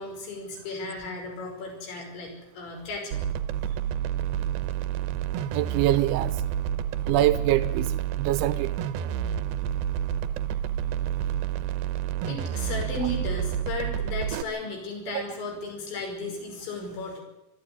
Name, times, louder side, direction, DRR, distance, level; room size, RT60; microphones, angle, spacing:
voice 1, 0.0-3.2 12.2-17.2, left 2 dB, 75° left, 2 dB, 7.6 m, -35 dB
sound 1, 3.1-14.4, right 10 dB, 75° right, 2.4 m, -29 dB
voice 2, 5.5-6.3 7.1-7.9 8.2-8.7 15.1-15.2, right 14 dB, 90° right, 12 dB, 3.4 m, -24 dB
24.0 x 13.5 x 9.6 m, 0.91 s
omnidirectional pair, 5.3 m